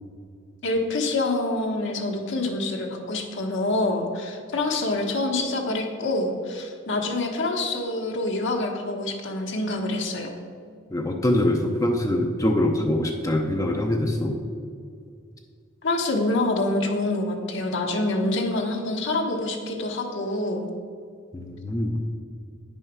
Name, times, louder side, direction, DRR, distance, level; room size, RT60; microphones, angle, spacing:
voice 1, 0.6-10.3 15.8-20.7, left 2 dB, 65° left, 1 dB, 1.2 m, -26 dB
voice 2, 10.9-14.4 21.3-22.0, left 1 dB, 15° left, 2 dB, 0.6 m, -24 dB
9.7 x 5.6 x 6.0 m, 2.2 s
head